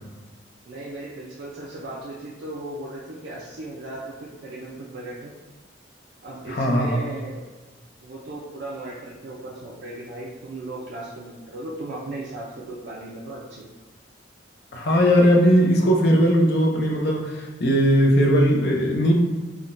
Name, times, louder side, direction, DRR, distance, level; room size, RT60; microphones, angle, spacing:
voice 1, 0.7-5.3 6.2-7.4 8.0-13.6, right 2 dB, 65° right, -7 dB, 0.4 m, -36 dB
voice 2, 6.5-7.1 14.7-19.1, equal, 60° left, 0 dB, 0.5 m, -19 dB
3.5 x 2.2 x 2.5 m, 1.3 s
head